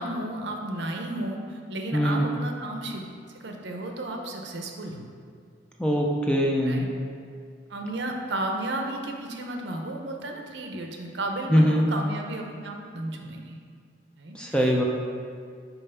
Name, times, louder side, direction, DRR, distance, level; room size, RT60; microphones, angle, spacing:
voice 1, 0.0-3.0 3.4-5.1 6.6-6.9 7.7-13.6 14.2-14.7, right 1 dB, 60° right, 2 dB, 0.7 m, -33 dB
voice 2, 1.9-2.2 5.8-6.9 11.5-11.9 14.3-14.8, equal, 5° left, -1 dB, 0.4 m, -22 dB
5.5 x 4.4 x 5.5 m, 2.2 s
head